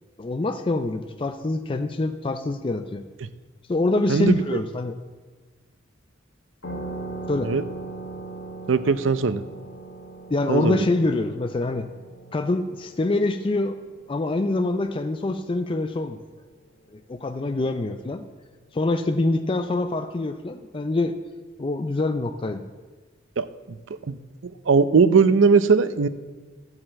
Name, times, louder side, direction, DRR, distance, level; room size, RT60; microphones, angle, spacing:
voice 1, 0.2-3.0 3.7-5.0 7.3-7.5 10.3-11.9 12.3-13.8 14.1-16.2 17.1-18.2 18.7-21.2 21.6-22.6, left 2 dB, 25° left, 8 dB, 0.4 m, -25 dB
voice 2, 4.1-4.6 7.4-7.6 8.7-9.4 10.5-10.9 23.4-23.5 24.1-24.2 24.7-26.1, right 5 dB, 80° right, 13 dB, 0.5 m, -19 dB
sound 1, 6.6-15.8, right 2 dB, 70° left, 1.8 m, -40 dB
14.0 x 4.8 x 7.4 m, 1.4 s
head